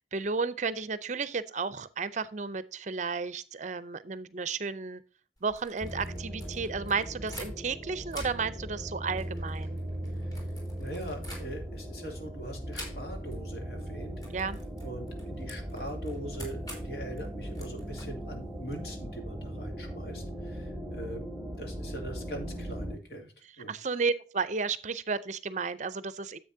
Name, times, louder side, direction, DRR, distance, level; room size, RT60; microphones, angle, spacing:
voice 1, 0.1-5.0 5.4-9.8 14.3-14.6 23.7-26.4, right 4 dB, 45° right, 0.5 m, -33 dB
sound 1, 5.4-7.8 8.1-11.9 12.7-13.4 13.6-13.9 14.2-18.8, equal, 20° left, 3.6 m, -48 dB
sound 2, 5.8-23.0, equal, ahead, 1.8 m, -39 dB
voice 2, 10.8-14.2 14.8-23.7, right 1 dB, 65° left, 2.7 m, -42 dB
10.0 x 8.0 x 2.7 m
head